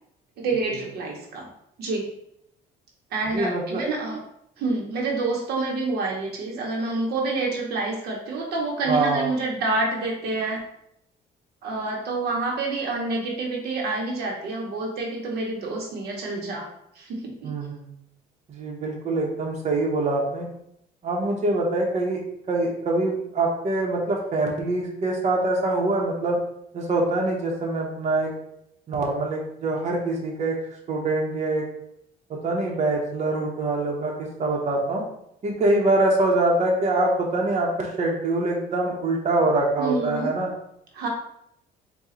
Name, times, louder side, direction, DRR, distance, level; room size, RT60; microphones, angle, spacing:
voice 1, 0.4-1.5 1.8-2.1 3.1-4.2 4.6-10.6 11.6-16.7 16.9-17.5 39.8-40.3 40.9-41.1, right 3 dB, 70° right, -1 dB, 0.9 m, -28 dB
voice 2, 3.3-3.8 8.9-9.3 17.4-17.8 18.5-20.5 21.0-22.2 22.5-26.4 26.7-28.3 28.9-30.6 30.9-31.6 32.3-34.1 34.4-35.1 35.4-40.5, right 2 dB, 40° right, -1 dB, 0.9 m, -24 dB
4.2 x 2.3 x 3.8 m, 0.76 s
cardioid pair, 110°, 17 cm